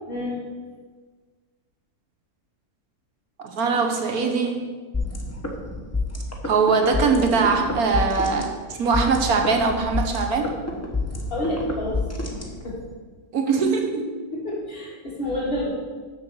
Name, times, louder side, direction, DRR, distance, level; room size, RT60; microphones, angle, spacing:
voice 1, 0.1-0.4 11.3-12.0 12.6-12.8 14.3-15.7, left 1 dB, 35° left, -7 dB, 3.3 m, -28 dB
voice 2, 3.4-4.7 6.4-10.5 13.3-14.1, right 4 dB, 70° right, 4 dB, 1.4 m, -22 dB
sound 1, 4.9-12.9, left 2 dB, 10° left, 0.9 m, -29 dB
6.9 x 6.7 x 6.5 m, 1.4 s
omnidirectional pair, 1.6 m